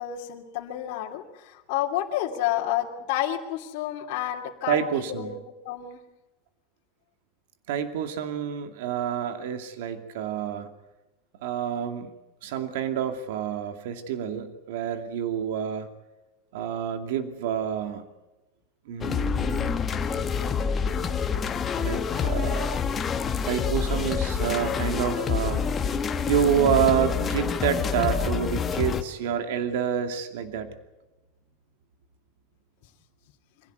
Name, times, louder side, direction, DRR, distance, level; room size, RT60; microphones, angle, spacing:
voice 1, 0.0-4.8 5.1-6.0, left 12 dB, 55° left, -2 dB, 2.8 m, -30 dB
voice 2, 4.7-5.3 7.7-10.7 11.4-12.1 12.4-15.9 16.5-18.0 18.9-19.8 20.9-21.1 21.8-23.0 23.4-25.7 26.3-30.7, right 8 dB, 75° right, 7 dB, 2.5 m, -28 dB
sound 1, 19.0-29.0, left 6 dB, 20° left, 1.3 m, -27 dB
25.5 x 16.5 x 9.4 m, 1.0 s
supercardioid pair, 165°, 0 cm